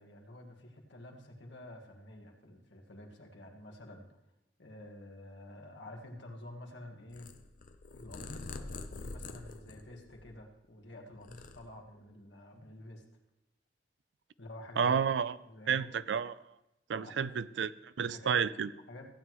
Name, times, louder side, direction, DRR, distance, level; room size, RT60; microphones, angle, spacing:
voice 1, 0.0-4.1 4.6-7.3 7.9-13.0 14.4-15.0 15.5-15.9 16.9-17.3 18.1-18.3 18.9-19.1, left 1 dB, 85° left, 1 dB, 1.8 m, -49 dB
Purr, 7.1-10.7 11.0-12.1, left 3 dB, 45° left, 0.6 m, -46 dB
voice 2, 14.8-15.4 15.7-16.4 16.9-18.7, right 7 dB, 80° right, 16 dB, 0.4 m, -31 dB
15.5 x 9.4 x 3.1 m, 0.91 s
head